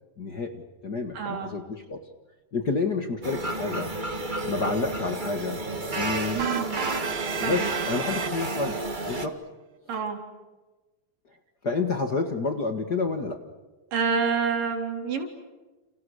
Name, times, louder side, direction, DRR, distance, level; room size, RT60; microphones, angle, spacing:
voice 1, 0.2-2.0 2.5-3.9 4.4-5.6 5.9-6.4 7.4-8.7 9.1-9.4 11.6-13.4, left 4 dB, 40° left, 6 dB, 1.7 m, -29 dB
voice 2, 1.1-1.5 6.3-6.9 7.4-7.8 9.9-10.2 13.9-15.3, right 5 dB, 90° right, 4 dB, 5.3 m, -28 dB
sound 1, 3.2-9.3, right 2 dB, 25° right, 1.1 m, -31 dB
sound 2, 6.4-8.8, right 7 dB, 60° right, 1.2 m, -32 dB
30.0 x 30.0 x 6.5 m, 1.2 s
omnidirectional pair, 3.7 m